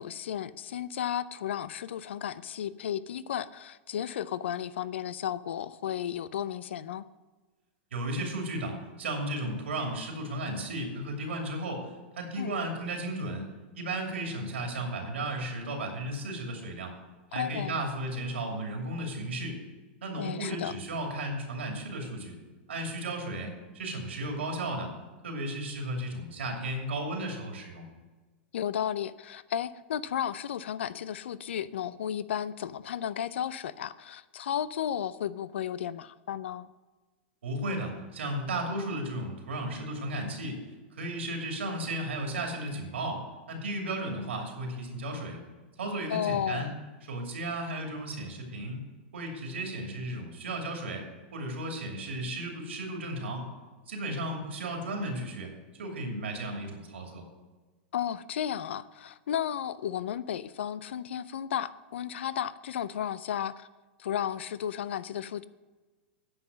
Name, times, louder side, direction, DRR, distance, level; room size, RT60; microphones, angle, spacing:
voice 1, 0.0-7.1 12.4-12.6 17.3-17.8 20.2-20.7 28.5-36.7 44.0-44.3 46.1-46.8 57.9-63.7 64.0-65.4, left 9 dB, 80° left, 17 dB, 0.5 m, -33 dB
voice 2, 7.9-13.5 13.7-16.9 17.3-19.6 20.0-22.4 22.7-24.9 25.2-27.8 37.4-40.6 40.9-45.4 45.8-46.7 47.1-48.8 49.1-51.1 51.3-53.5 53.9-55.5 55.8-57.2, right 1 dB, 90° right, 2 dB, 2.6 m, -34 dB
9.6 x 5.7 x 7.2 m, 1.3 s
hypercardioid pair, 120°, 6 cm